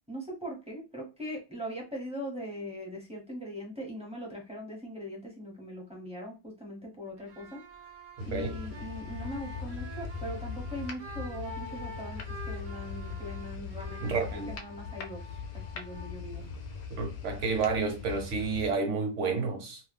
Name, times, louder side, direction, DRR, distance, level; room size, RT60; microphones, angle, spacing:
voice 1, 0.1-7.6 8.2-15.2 15.7-16.4, equal, 5° right, 0.5 m, -40 dB
sound 1, 7.2-17.0, equal, 80° right, 0.4 m, -48 dB
sound 2, 8.2-18.7, left 5 dB, 70° left, 0.9 m, -40 dB
voice 2, 14.0-14.5 16.9-19.8, right 4 dB, 60° right, 1.0 m, -30 dB
2.7 x 2.1 x 3.3 m
omnidirectional pair, 1.5 m